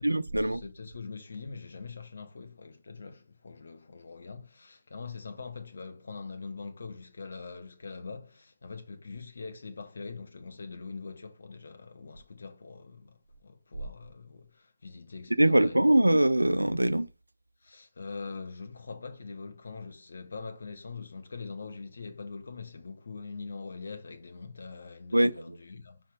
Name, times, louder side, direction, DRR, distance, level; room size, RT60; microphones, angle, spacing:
voice 1, 0.0-0.6 15.4-17.1 25.1-25.6, right 1 dB, 85° right, 0.5 m, -23 dB
voice 2, 0.5-16.0 17.6-26.0, left 4 dB, 60° left, 1.2 m, -43 dB
5.4 x 5.1 x 3.4 m
figure-of-eight pair, 140°, 0 cm